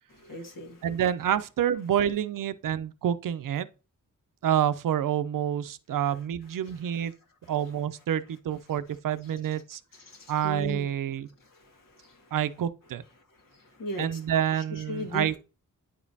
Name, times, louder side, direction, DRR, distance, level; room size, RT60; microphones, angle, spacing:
voice 1, 0.2-0.9 6.7-6.8 7.4-7.5 9.2-9.3 9.9-10.9 11.4-12.3 13.3-14.2 14.6-15.4, equal, 75° left, 1.7 m, -39 dB
voice 2, 0.8-3.7 4.4-7.1 7.5-9.8 10.3-11.3 12.3-13.0 14.0-15.4, right 10 dB, 75° right, 0.5 m, -28 dB
9.1 x 5.1 x 2.7 m
wide cardioid pair, 95°, 33 cm